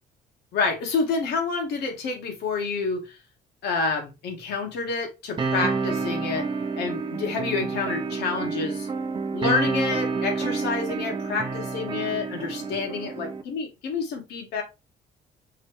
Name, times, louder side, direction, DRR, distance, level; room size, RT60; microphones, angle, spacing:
voice 1, 0.5-3.0 3.6-6.4 6.8-8.9 9.3-14.6, left 4 dB, 75° left, 1.6 m, -28 dB
sound 1, 5.4-13.4, right 4 dB, 30° right, 0.7 m, -29 dB
5.6 x 2.9 x 3.2 m
cardioid pair, 110°, 17 cm